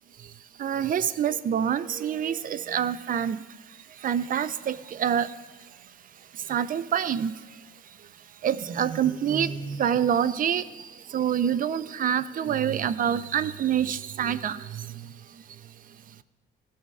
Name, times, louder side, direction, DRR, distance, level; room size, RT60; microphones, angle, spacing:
voice 1, 0.6-3.4 4.0-5.3 6.5-7.3 8.4-10.6 11.1-14.9, right 9 dB, 45° right, 14 dB, 0.4 m, -26 dB
16.0 x 6.2 x 2.4 m, 1.3 s
cardioid pair, 90°, 20 cm